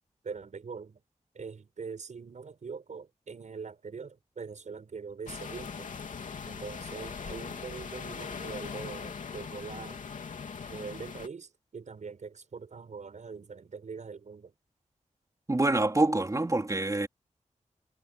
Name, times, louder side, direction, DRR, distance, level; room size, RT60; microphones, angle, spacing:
voice 1, 0.2-1.0 1.3-6.0 6.4-10.1 10.7-14.5, right 5 dB, 70° right, 6.3 m, -43 dB
sound 1, 5.3-11.3, left 6 dB, 85° left, 3.0 m, -40 dB
voice 2, 15.5-17.1, right 2 dB, 25° right, 4.1 m, -26 dB
wide cardioid pair, 90°, 13 cm